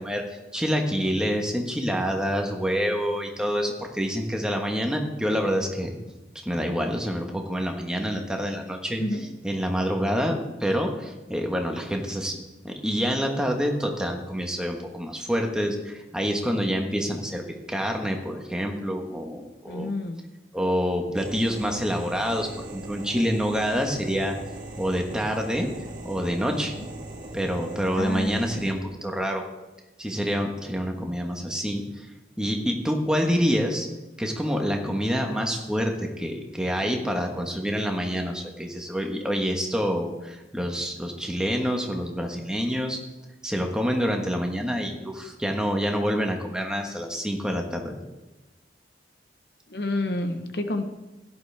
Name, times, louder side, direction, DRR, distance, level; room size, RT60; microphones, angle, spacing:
voice 1, 0.0-5.9 6.4-9.0 9.4-19.9 20.5-24.3 24.8-25.7 26.0-26.7 27.3-29.4 30.0-32.1 32.4-33.9 34.2-43.0 43.4-48.0, equal, 5° right, 2 dB, 1.3 m, -27 dB
voice 2, 19.7-20.2 26.8-26.9 27.9-28.7 49.7-50.8, left 1 dB, 65° left, 7 dB, 1.0 m, -29 dB
sound 1, 21.2-28.7, right 1 dB, 50° right, 1.5 m, -39 dB
16.5 x 11.0 x 3.5 m, 1.1 s
head